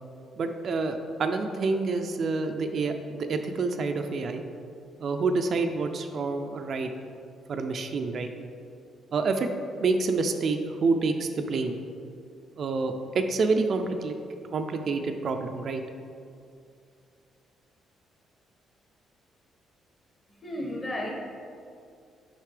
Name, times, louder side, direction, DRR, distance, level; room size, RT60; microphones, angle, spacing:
voice 1, 0.4-4.4 5.0-6.9 7.5-8.3 9.1-9.5 9.8-11.8 12.6-14.2 14.5-15.8, right 3 dB, 55° right, 6 dB, 0.4 m, -28 dB
voice 2, 20.3-21.1, left 1 dB, 30° left, -1 dB, 1.3 m, -33 dB
6.6 x 5.3 x 3.3 m, 2.4 s
cardioid pair, 90°, 0 cm